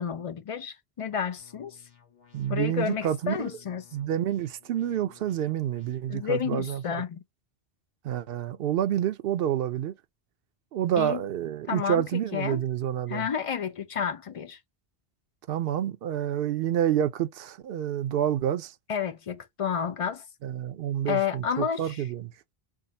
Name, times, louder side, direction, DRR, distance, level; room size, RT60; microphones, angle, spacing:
voice 1, 0.0-1.8 2.5-3.8 6.1-7.2 11.0-11.2 11.7-12.6 13.1-14.6 18.9-20.3 21.1-22.0, left 7 dB, 50° left, 0.4 m, -30 dB
sound 1, 1.4-6.4, left 9 dB, 65° left, 1.2 m, -57 dB
voice 2, 2.3-3.5 3.9-7.0 8.0-9.9 10.7-13.3 15.5-18.7 20.4-22.3, right 10 dB, 70° right, 0.7 m, -28 dB
3.7 x 2.0 x 3.9 m
omnidirectional pair, 1.1 m